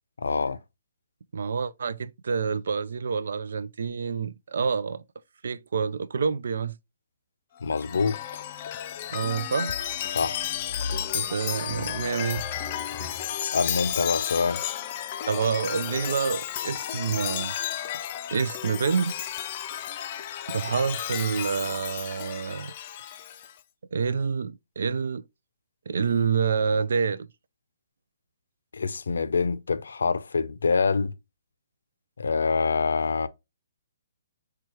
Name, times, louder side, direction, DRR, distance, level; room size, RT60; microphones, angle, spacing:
voice 1, 0.2-0.6 7.6-8.4 10.1-10.6 13.4-14.6 28.7-31.1 32.2-33.3, left 4 dB, 90° left, 0.5 m, -26 dB
voice 2, 1.3-5.0 5.4-6.8 9.1-9.8 11.1-12.4 13.0-13.1 15.3-17.6 18.3-19.3 20.5-22.7 23.9-25.3 25.9-27.3, right 5 dB, 75° right, 0.4 m, -27 dB
Chime, 7.6-23.5, left 10 dB, 35° left, 0.4 m, -33 dB
4.7 x 2.3 x 4.4 m
hypercardioid pair, 160°, 0 cm